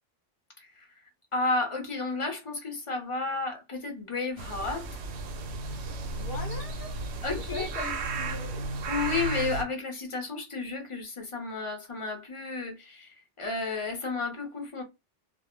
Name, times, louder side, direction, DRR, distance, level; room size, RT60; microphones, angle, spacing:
voice 1, 0.6-1.0 1.3-5.0 7.2-7.7 8.9-14.8, left 3 dB, 35° left, 0.6 m, -32 dB
sound 1, 4.4-9.6, right 3 dB, 90° right, 0.8 m, -34 dB
voice 2, 6.1-6.9 7.3-8.7, left 5 dB, 65° left, 0.8 m, -40 dB
2.2 x 2.1 x 3.0 m
omnidirectional pair, 1.1 m